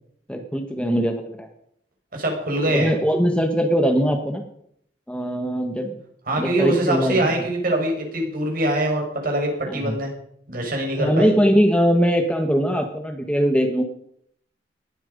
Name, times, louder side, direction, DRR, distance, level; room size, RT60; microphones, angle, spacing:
voice 1, 0.3-1.5 2.6-4.4 5.1-5.9 6.4-7.3 9.7-9.9 11.0-13.8, equal, 5° left, 4 dB, 1.4 m, -21 dB
voice 2, 2.1-2.9 6.3-10.1 10.5-11.3, right 1 dB, 55° right, 1 dB, 5.4 m, -23 dB
19.0 x 12.0 x 5.3 m, 0.70 s
head